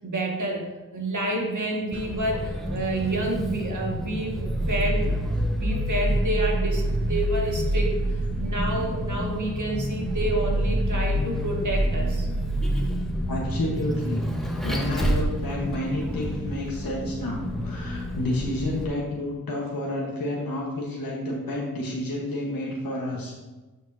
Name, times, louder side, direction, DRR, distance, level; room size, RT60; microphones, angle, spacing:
voice 1, 0.0-8.0 8.4-12.3, right 1 dB, 60° right, 0 dB, 1.8 m, -29 dB
Vehicle, 1.9-18.8, equal, ahead, 1.1 m, -27 dB
voice 2, 13.3-14.2 14.6-23.4, left 1 dB, 85° left, -3 dB, 1.3 m, -30 dB
9.1 x 6.0 x 2.7 m, 1.1 s
cardioid pair, 60°, 34 cm